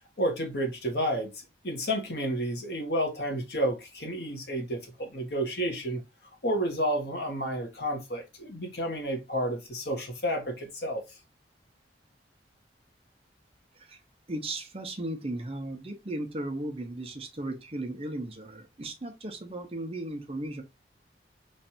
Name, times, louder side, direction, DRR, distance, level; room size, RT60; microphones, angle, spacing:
voice 1, 0.2-11.0, equal, 60° left, 1.2 m, -31 dB
voice 2, 14.3-20.6, right 1 dB, 35° right, 0.7 m, -36 dB
3.2 x 2.6 x 4.2 m
head